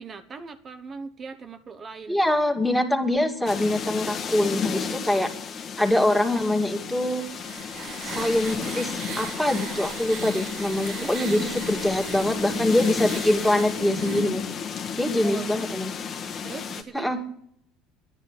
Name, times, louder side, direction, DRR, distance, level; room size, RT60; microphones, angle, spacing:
voice 1, 0.0-2.2 5.1-5.3 10.8-11.1 15.2-15.7 16.4-17.1, right 4 dB, 35° right, 9 dB, 1.2 m, -40 dB
voice 2, 2.1-5.3 5.6-7.2 8.0-14.4 15.0-15.9 16.9-17.2, left 1 dB, ahead, 3 dB, 2.4 m, -24 dB
sound 1, 3.5-16.8, left 6 dB, 45° left, 1.5 m, -32 dB
sound 2, 6.9-14.4, right 9 dB, 55° right, 1.2 m, -39 dB
10.5 x 10.5 x 9.8 m, 0.69 s
supercardioid pair, 90°, 0 cm